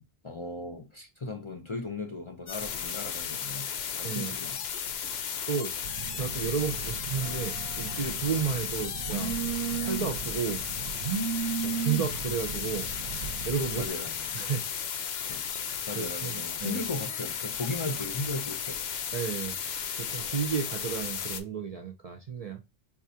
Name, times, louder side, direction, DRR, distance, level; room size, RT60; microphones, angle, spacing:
voice 1, 0.0-3.7 3.9-4.6 13.7-14.4 15.3-15.4 15.9-18.8, left 3 dB, 40° left, 0.5 m, -37 dB
sound 1, 2.5-21.4, left 8 dB, 85° left, 0.8 m, -34 dB
voice 2, 4.0-4.3 4.9-5.2 5.5-5.8 6.1-9.3 9.8-10.6 11.6-12.9 13.4-13.9 14.3-14.7 15.9-16.8 19.1-22.6, right 6 dB, 50° right, 0.5 m, -32 dB
Telephone, 5.8-13.9, right 7 dB, 75° right, 0.8 m, -35 dB
4.0 x 2.4 x 2.7 m
omnidirectional pair, 1.0 m